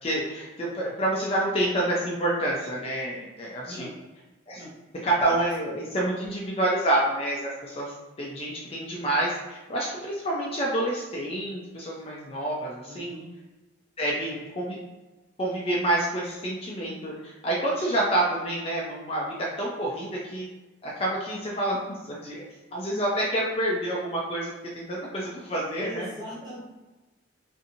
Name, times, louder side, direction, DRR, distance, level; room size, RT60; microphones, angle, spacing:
voice 1, 0.0-3.9 4.5-4.6 5.0-7.9 8.2-13.1 14.0-14.8 15.4-20.5 20.8-22.4 22.7-26.1, right 1 dB, 30° left, -4 dB, 0.4 m, -28 dB
voice 2, 12.8-13.3 14.2-14.3 25.8-26.6, left 1 dB, 20° right, -7 dB, 0.9 m, -39 dB
2.7 x 2.5 x 2.6 m, 1.1 s
head